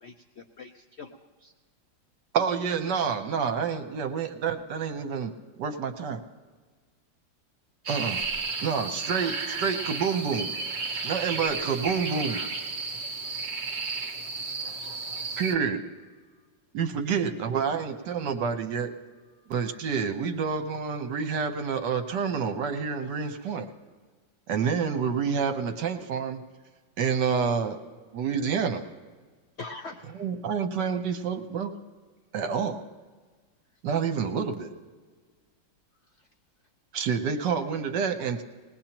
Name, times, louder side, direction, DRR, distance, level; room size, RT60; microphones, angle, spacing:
voice 1, 0.0-1.5 29.6-30.3, left 3 dB, 70° left, 4 dB, 0.6 m, -43 dB
voice 2, 2.3-5.3 5.6-6.2 7.9-8.2 8.6-10.5 11.0-12.4 15.4-15.8 16.7-18.9 19.5-23.7 24.5-26.4 27.0-27.8 28.1-28.8 30.2-31.7 32.3-32.8 33.8-34.7 36.9-38.4, right 6 dB, 70° right, 7 dB, 1.5 m, -28 dB
sound 1, 7.9-15.6, right 4 dB, 40° right, 1.2 m, -33 dB
voice 3, 12.8-13.2 13.7-14.2 14.7-15.3 16.2-16.5 19.3-19.5, left 4 dB, 30° left, -1 dB, 1.3 m, -66 dB
20.0 x 19.5 x 3.0 m, 1.4 s
omnidirectional pair, 2.0 m